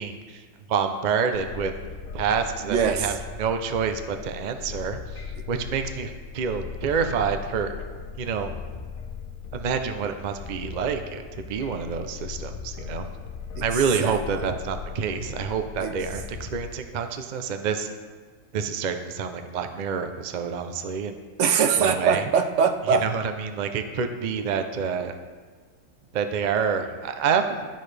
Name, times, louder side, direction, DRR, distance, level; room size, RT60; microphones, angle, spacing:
voice 1, 0.0-1.7 2.1-7.7 8.2-8.6 9.5-13.1 13.6-17.9 18.5-21.2 21.8-22.2 23.0-25.1 26.1-27.7, right 6 dB, 50° right, 7 dB, 0.5 m, -28 dB
sound 1, 1.3-16.6, left 6 dB, 85° left, 1.2 m, -38 dB
voice 2, 2.7-3.1 13.6-13.7 14.0-14.2 15.8-16.0 21.4-23.1, right 6 dB, 70° right, 7 dB, 0.9 m, -22 dB
10.5 x 6.5 x 3.3 m, 1.5 s
omnidirectional pair, 1.4 m